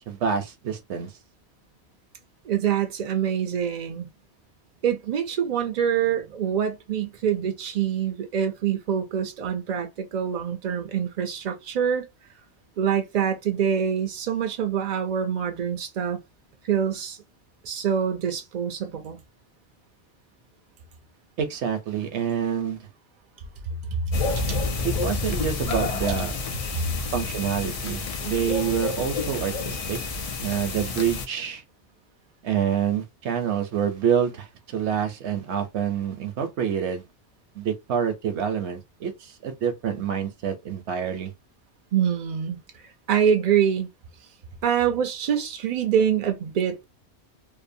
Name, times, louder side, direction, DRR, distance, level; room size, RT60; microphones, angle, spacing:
voice 1, 0.1-1.1 21.4-22.8 24.8-26.4 27.1-30.0 30.4-31.6 32.4-37.0 37.6-41.3, right 8 dB, 75° right, 0.9 m, -27 dB
voice 2, 2.5-4.1 4.8-12.0 12.8-16.2 16.6-17.2 17.6-19.2 24.4-24.6 41.9-42.6 43.1-43.9 44.6-46.8, right 8 dB, 60° right, 0.4 m, -25 dB
sound 1, 24.1-31.3, left 3 dB, 55° left, 0.4 m, -29 dB
2.7 x 2.1 x 2.6 m
omnidirectional pair, 1.2 m